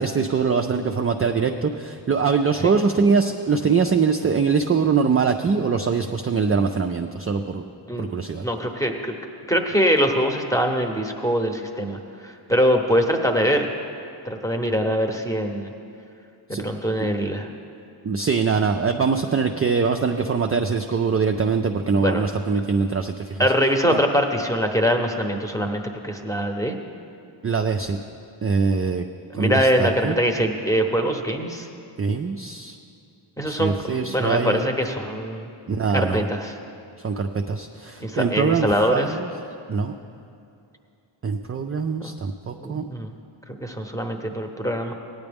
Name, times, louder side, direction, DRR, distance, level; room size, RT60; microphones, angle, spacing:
voice 1, 0.0-7.6 8.0-8.5 16.5-16.6 18.0-23.5 23.9-24.0 27.4-28.0 28.4-29.0 29.3-30.2 32.0-32.8 33.4-34.6 35.7-36.3 37.0-39.3 39.7-39.9 41.2-42.9, right 5 dB, 30° right, 4 dB, 0.4 m, -23 dB
voice 2, 8.4-9.1 9.5-13.7 14.2-15.7 16.5-17.5 22.0-22.2 23.4-26.8 29.3-31.7 33.4-35.5 35.9-36.5 38.0-39.1 42.0-42.1 42.6-43.1 43.5-44.9, equal, 5° left, 4 dB, 0.9 m, -23 dB
16.0 x 9.5 x 3.5 m, 2.5 s
wide cardioid pair, 80°, 49 cm